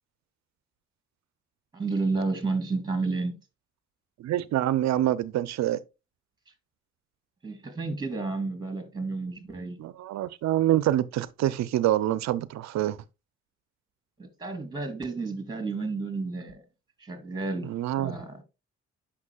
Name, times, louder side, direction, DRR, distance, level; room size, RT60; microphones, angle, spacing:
voice 1, 1.7-3.4 7.4-9.8 14.2-16.6 17.0-18.4, right 3 dB, 15° right, 2.9 m, -31 dB
voice 2, 4.2-5.8 9.8-13.0 17.6-18.2, right 13 dB, 70° right, 0.5 m, -26 dB
9.5 x 6.0 x 2.3 m
supercardioid pair, 60°, 29 cm